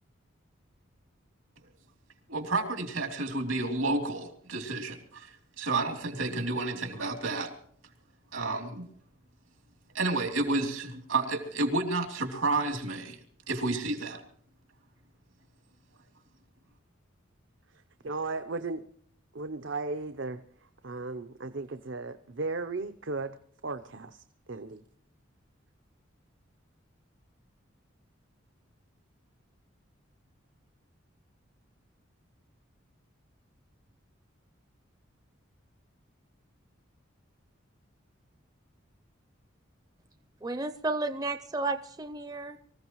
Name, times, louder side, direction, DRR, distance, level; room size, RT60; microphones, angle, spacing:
voice 1, 2.3-5.3 5.6-7.5 8.3-8.9 9.9-13.2 13.5-14.2, right 2 dB, 85° right, 2 dB, 3.1 m, -30 dB
voice 2, 18.0-18.8 19.3-20.4 20.8-23.4 23.6-24.8, right 3 dB, 65° right, 9 dB, 0.7 m, -35 dB
voice 3, 40.4-42.6, right 2 dB, 20° right, 10 dB, 0.5 m, -32 dB
25.0 x 15.5 x 3.1 m, 0.64 s
head